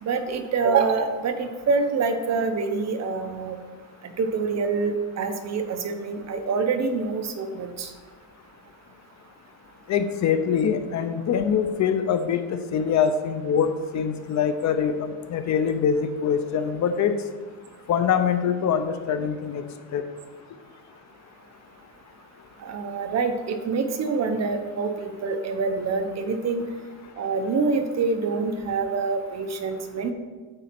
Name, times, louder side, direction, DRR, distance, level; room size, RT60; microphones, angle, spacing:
voice 1, 0.0-3.6 4.2-7.9 22.6-26.6 27.2-30.1, right 4 dB, 45° right, 7 dB, 0.8 m, -26 dB
voice 2, 9.9-13.7 13.9-17.1 17.9-19.6 19.9-20.0, left 7 dB, 50° left, 9 dB, 0.7 m, -24 dB
9.0 x 4.1 x 5.8 m, 1.4 s
cardioid pair, 140°, 37 cm